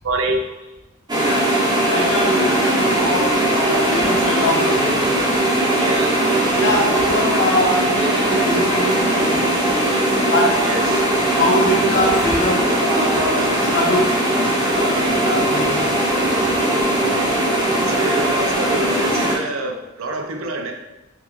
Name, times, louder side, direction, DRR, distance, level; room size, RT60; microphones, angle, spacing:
voice 1, 0.0-0.4 5.8-6.1 10.6-11.1 17.8-20.7, right 2 dB, 80° right, 3 dB, 0.5 m, -26 dB
voice 2, 1.1-1.6 1.9-5.1 6.5-9.9 10.3-10.7 11.2-14.2 14.7-16.0, left 1 dB, 65° left, -3 dB, 0.9 m, -23 dB
sound 1, 1.1-19.4, right 1 dB, 20° right, 0.8 m, -19 dB
3.6 x 2.4 x 3.0 m, 0.96 s
head